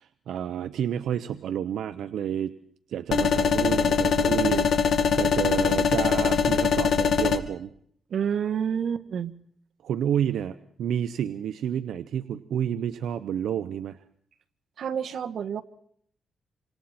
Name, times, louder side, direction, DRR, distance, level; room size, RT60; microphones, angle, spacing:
voice 1, 0.0-2.5 2.9-7.7 9.8-14.0, right 9 dB, 85° right, 11 dB, 0.9 m, -30 dB
sound 1, 3.1-7.4, left 6 dB, 65° left, 2.1 m, -22 dB
voice 2, 8.1-9.3 14.8-15.6, right 8 dB, 65° right, 10 dB, 1.5 m, -28 dB
29.0 x 26.0 x 4.4 m, 0.64 s
cardioid pair, 120°, 0 cm